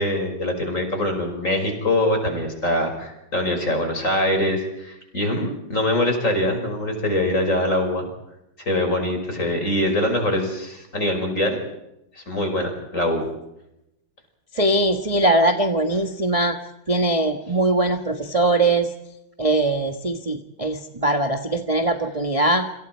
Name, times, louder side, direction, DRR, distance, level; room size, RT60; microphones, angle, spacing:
voice 1, 0.0-8.1 8.7-11.6 12.2-13.2, left 1 dB, 35° left, 4 dB, 6.0 m, -23 dB
voice 2, 14.5-16.6 16.9-18.9 19.4-22.6, right 2 dB, 20° right, 5 dB, 1.3 m, -21 dB
28.5 x 26.5 x 4.6 m, 0.86 s
omnidirectional pair, 2.2 m